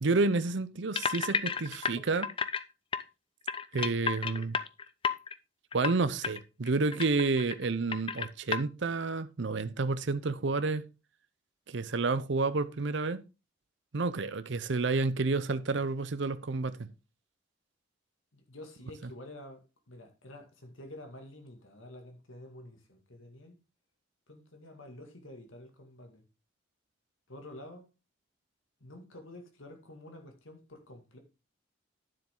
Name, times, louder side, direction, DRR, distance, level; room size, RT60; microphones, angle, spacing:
voice 1, 0.0-2.3 3.7-4.6 5.7-10.9 11.7-13.2 13.9-16.9 19.0-19.1, right 3 dB, 65° right, 0.6 m, -30 dB
sound 1, 1.0-2.6 2.9-3.0 3.5-5.3 5.7-5.9 6.2-6.4 6.7-7.6 7.9-8.6, left 6 dB, 25° left, 0.5 m, -32 dB
voice 2, 18.3-23.6 24.3-26.2 27.3-27.9 28.8-31.2, left 1 dB, 80° left, 2.2 m, -49 dB
9.9 x 7.5 x 3.8 m
head